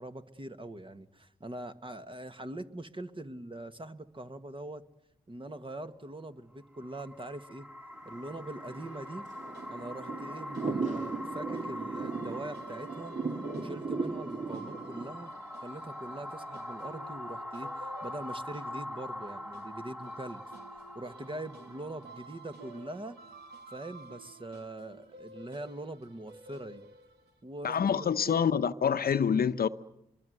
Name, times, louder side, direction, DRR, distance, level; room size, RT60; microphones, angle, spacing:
voice 1, 0.0-4.8 5.3-7.7 8.1-9.2 9.7-13.1 13.6-15.3 15.6-20.5 21.0-23.2 23.7-26.8 27.4-28.4, right 1 dB, 30° right, 1.9 m, -42 dB
sound 1, 6.6-23.8, left 1 dB, 10° right, 1.7 m, -44 dB
Thunder / Rain, 8.1-15.1, right 4 dB, 50° right, 2.8 m, -37 dB
sound 2, 8.6-27.4, right 3 dB, 90° right, 2.2 m, -53 dB
voice 2, 27.6-29.7, left 7 dB, 65° left, 0.9 m, -26 dB
24.5 x 23.0 x 8.1 m
supercardioid pair, 40°, 17 cm